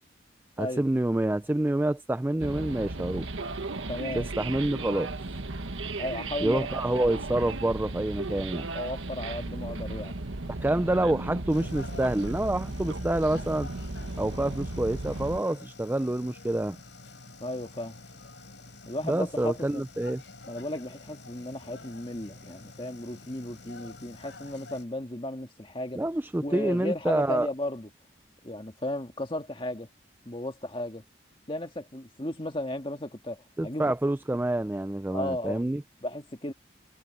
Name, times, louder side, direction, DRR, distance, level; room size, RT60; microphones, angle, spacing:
voice 1, 0.6-3.3 4.1-5.1 6.4-8.7 10.6-13.7 14.2-16.8 19.0-20.2 26.0-27.5 33.6-35.8, right 1 dB, 10° right, 0.3 m, -27 dB
sound 1, 2.4-15.4, right 2 dB, 85° right, 1.4 m, -35 dB
voice 2, 3.9-4.3 6.0-6.8 8.7-10.1 17.4-18.0 18.9-19.8 20.5-26.0 26.4-27.9 28.4-29.9 30.3-31.0 31.5-33.9 35.1-35.7 36.0-36.5, left 1 dB, 25° left, 1.8 m, -35 dB
sound 2, 11.5-24.8, left 3 dB, 70° left, 4.6 m, -48 dB
head